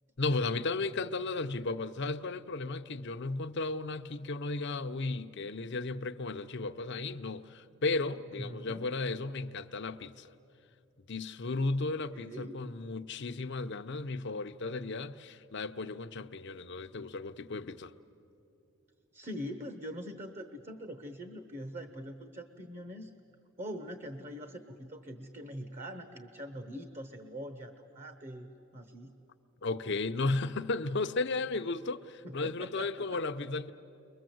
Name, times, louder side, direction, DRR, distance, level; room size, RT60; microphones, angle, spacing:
voice 1, 0.2-10.3 11.1-17.9 29.6-33.7, left 3 dB, 55° left, 0.7 m, -34 dB
voice 2, 8.3-8.9 12.1-12.6 19.1-23.1 23.6-29.1 32.2-33.2, equal, 35° right, 1.0 m, -43 dB
30.0 x 23.0 x 7.8 m
head